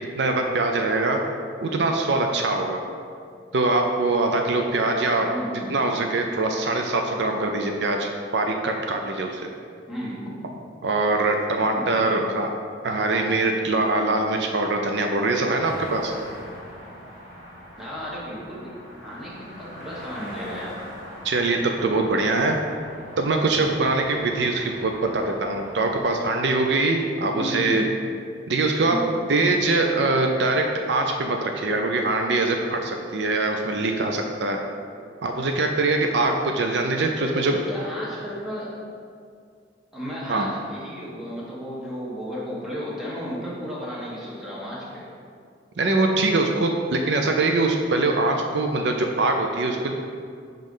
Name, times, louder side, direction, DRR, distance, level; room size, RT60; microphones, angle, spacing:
voice 1, 0.2-1.2 1.6-2.8 3.5-5.3 5.7-9.5 10.8-12.5 12.8-16.1 21.2-22.6 23.2-27.8 28.5-29.0 29.3-34.6 35.2-37.6 40.3-40.5 45.8-49.9, right 2 dB, 65° right, 3 dB, 0.5 m, -23 dB
voice 2, 5.2-5.8 9.9-10.4 11.6-11.9 17.8-20.8 27.3-27.8 28.8-29.2 37.1-38.7 39.9-45.1, equal, ahead, -8 dB, 1.3 m, -34 dB
sound 1, 15.6-26.1, equal, 45° right, 1.4 m, -42 dB
5.4 x 3.7 x 5.4 m, 2.3 s
head